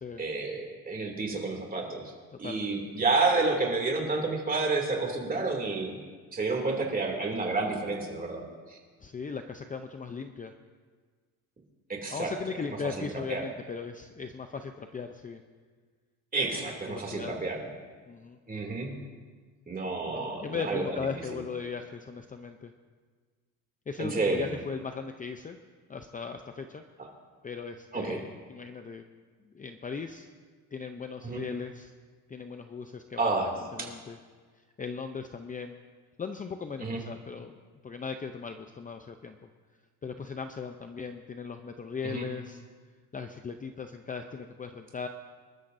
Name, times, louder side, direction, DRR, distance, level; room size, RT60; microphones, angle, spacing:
voice 1, 0.2-2.0 2.4-6.0 6.3-8.8 11.9-12.3 12.8-13.0 13.3-13.4 16.3-17.6 18.5-18.9 19.7-21.1 24.0-24.5 27.9-28.2 31.2-31.4 33.2-33.5 33.8-33.9 36.8-37.0 42.0-42.3, right 3 dB, 25° right, 1 dB, 2.6 m, -30 dB
voice 2, 2.4-2.8 9.0-10.5 12.1-15.4 16.6-17.4 18.1-18.4 20.1-22.7 23.9-25.6 25.9-26.8 27.4-29.0 29.5-30.3 30.7-31.9 32.3-33.3 33.7-34.2 34.8-35.8 36.2-37.6 37.8-39.4 40.0-42.6 43.1-45.1, left 5 dB, 25° left, 6 dB, 0.6 m, -38 dB
25.5 x 12.5 x 2.7 m, 1.5 s
cardioid pair, 130°, 36 cm